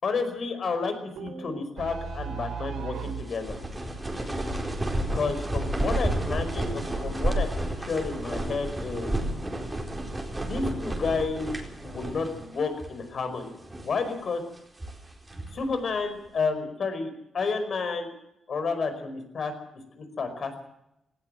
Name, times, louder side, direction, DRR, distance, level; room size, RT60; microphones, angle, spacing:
voice 1, 0.0-3.6 5.1-7.5 7.8-9.1 10.3-11.5 11.8-13.5 13.8-14.4 15.5-18.1 18.5-19.5 20.0-20.6, left 4 dB, 50° left, 8 dB, 5.2 m, -30 dB
sound 1, 1.2-3.3, right 6 dB, 80° right, 3.9 m, -36 dB
sound 2, 3.0-12.5 12.8-12.9 13.5-14.0 14.5-15.6, right 1 dB, 15° right, 4.4 m, -31 dB
19.0 x 18.5 x 7.8 m, 0.84 s
cardioid pair, 125°, 0 cm